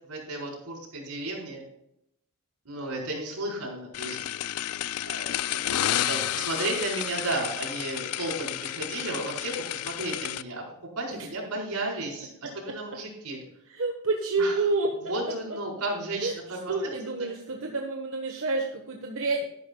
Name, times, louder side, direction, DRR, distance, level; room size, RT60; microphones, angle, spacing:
voice 1, 0.1-1.6 2.6-4.2 5.1-10.6 11.0-13.4 14.4-14.5 15.0-16.7, right 2 dB, 90° right, -3 dB, 4.5 m, -33 dB
sound 1, 3.9-10.4, left 12 dB, 75° left, 0.4 m, -31 dB
voice 2, 12.4-12.7 13.7-14.9 15.3-15.6 16.2-19.5, right 3 dB, 65° right, 2 dB, 1.2 m, -29 dB
13.0 x 11.0 x 2.3 m, 0.81 s
head